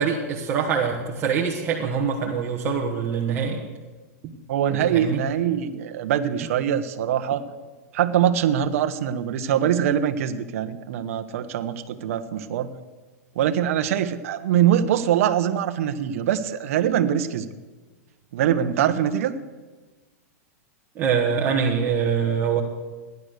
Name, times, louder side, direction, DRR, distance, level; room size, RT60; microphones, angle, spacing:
voice 1, 0.0-3.6 4.2-4.3 4.9-5.2 20.9-22.6, right 6 dB, 25° right, -2 dB, 1.5 m, -24 dB
voice 2, 4.5-7.5 7.9-12.7 13.3-17.5 18.3-19.4, right 10 dB, 60° right, 9 dB, 1.1 m, -23 dB
15.0 x 11.0 x 6.6 m, 1.3 s
supercardioid pair, 150°, 8 cm